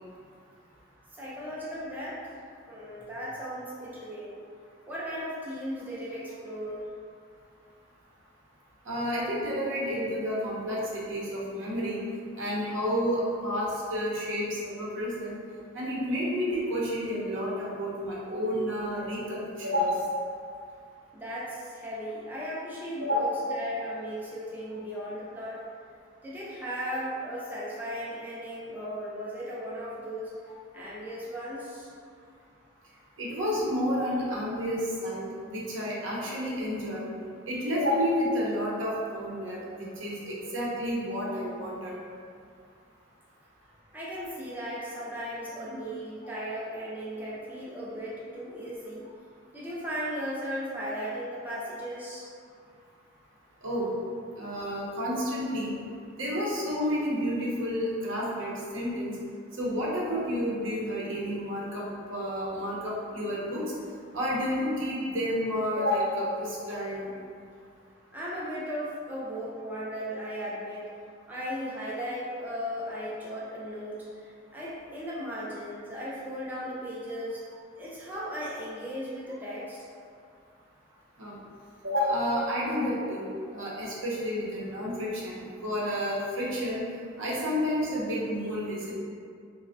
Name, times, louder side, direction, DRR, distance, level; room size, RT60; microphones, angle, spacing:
voice 1, 1.2-2.2 2.7-4.4 4.9-6.8 21.1-25.6 26.2-30.3 30.7-31.9 43.9-49.0 49.5-52.3 68.1-70.9 71.3-74.1 74.5-77.4 77.8-79.8, equal, 10° right, -7 dB, 0.3 m, -36 dB
voice 2, 8.9-12.0 12.4-15.3 15.7-20.1 23.0-23.4 33.2-37.1 37.5-41.9 53.6-53.9 54.4-55.8 56.2-59.2 59.6-61.8 62.1-63.6 64.1-67.1 81.2-81.4 81.8-83.3 83.5-86.8 87.2-89.0, equal, 75° right, -5 dB, 0.7 m, -30 dB
3.3 x 2.0 x 2.5 m, 2.3 s
head